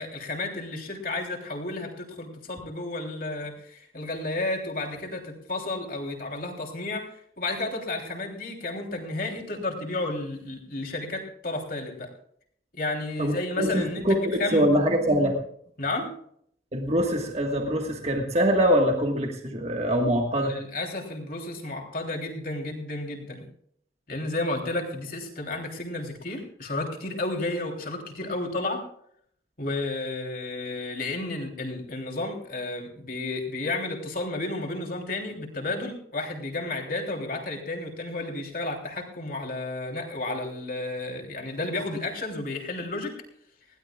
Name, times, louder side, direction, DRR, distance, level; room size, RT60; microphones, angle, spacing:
voice 1, 0.0-12.1 12.7-14.7 15.8-16.1 20.4-23.5 24.1-28.8 29.6-43.1, left 2 dB, 50° left, 1 dB, 3.3 m, -32 dB
voice 2, 13.2-15.4 16.7-20.5, equal, 35° right, 2 dB, 1.5 m, -24 dB
20.5 x 16.5 x 2.4 m, 0.66 s
head